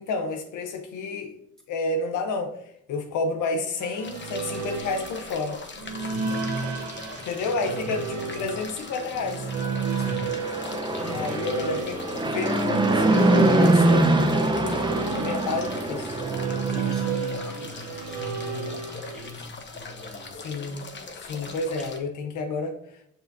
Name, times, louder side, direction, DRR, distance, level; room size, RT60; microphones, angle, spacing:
voice 1, 0.0-1.4 1.7-2.5 2.9-5.6 7.2-9.5 11.1-16.1 20.4-20.9 21.2-22.8, left 3 dB, 80° left, 5 dB, 0.8 m, -30 dB
sound 1, 3.8-19.5, right 5 dB, 75° right, 1.2 m, -33 dB
sound 2, 4.0-22.0, left 3 dB, 35° left, 1.0 m, -40 dB
voice 2, 6.0-6.3 7.6-8.0 8.4-8.6 10.0-10.3 10.7-11.3 16.6-20.4 21.8-21.9, left 3 dB, ahead, -2 dB, 2.2 m, -40 dB
Fixed-wing aircraft airplane, 9.6-17.0, right 2 dB, 15° right, 0.7 m, -23 dB
7.2 x 5.6 x 2.7 m, 0.72 s
cardioid pair, 90°, 30 cm